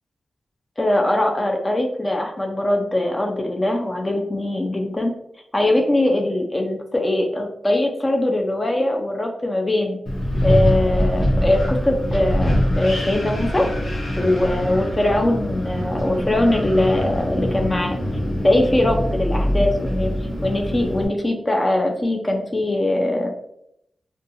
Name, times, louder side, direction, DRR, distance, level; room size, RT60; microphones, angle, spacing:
voice 1, 0.8-5.1 5.5-10.0 10.4-13.7 14.2-18.0 18.4-20.1 20.4-23.4, left 1 dB, 25° left, 2 dB, 0.4 m, -21 dB
Wind, 10.1-21.1, equal, 80° left, 1.0 m, -23 dB
2.4 x 2.2 x 2.8 m, 0.75 s
cardioid pair, 75°, 0 cm